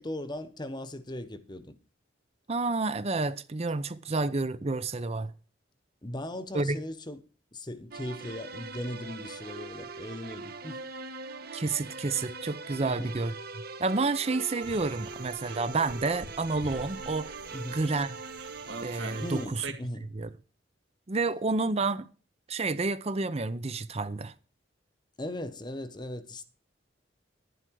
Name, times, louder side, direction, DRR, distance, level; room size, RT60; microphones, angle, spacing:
voice 1, 0.0-1.8 6.0-7.2 7.5-10.8 12.8-13.1 17.5-17.8 19.2-20.1 25.2-26.4, left 1 dB, 25° left, 1.1 m, -38 dB
voice 2, 2.5-5.3 6.5-6.8 11.5-13.3 13.8-17.4 17.7-18.1 18.8-19.7 20.1-20.3 21.1-22.1 22.5-24.3, right 3 dB, 35° right, 0.7 m, -29 dB
sound 1, 7.9-19.5, right 4 dB, 55° right, 1.4 m, -42 dB
sound 2, 14.6-19.7, right 3 dB, 70° right, 2.0 m, -44 dB
11.0 x 11.0 x 4.7 m
head